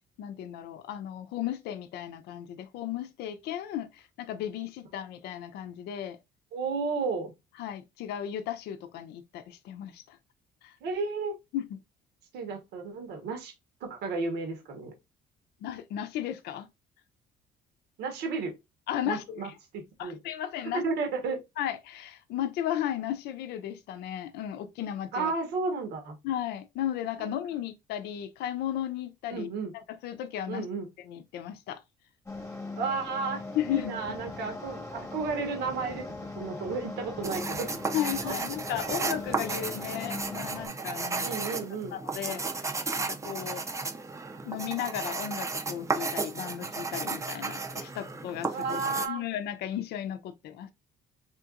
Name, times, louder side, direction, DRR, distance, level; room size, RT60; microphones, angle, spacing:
voice 1, 0.2-6.2 7.6-10.2 10.6-10.8 11.5-11.8 15.6-16.7 18.9-19.5 20.0-20.8 21.6-25.3 26.2-29.5 29.9-30.6 31.0-31.8 33.5-34.2 37.9-41.3 41.9-43.6 44.4-50.7, left 11 dB, 75° left, 0.5 m, -35 dB
voice 2, 6.5-7.3 10.8-11.4 12.3-13.5 13.8-14.9 18.0-18.5 19.0-20.2 20.7-21.4 25.1-26.2 27.2-27.3 29.3-29.7 30.5-30.9 32.8-33.4 33.7-36.0 36.4-37.7 38.2-38.4 41.2-41.9 48.5-49.3, right 4 dB, 80° right, 1.1 m, -33 dB
sound 1, 32.3-40.7, left 2 dB, 15° left, 1.1 m, -40 dB
sound 2, 37.2-49.1, right 4 dB, 20° right, 0.5 m, -34 dB
4.3 x 2.9 x 2.4 m
cardioid pair, 110°, 17 cm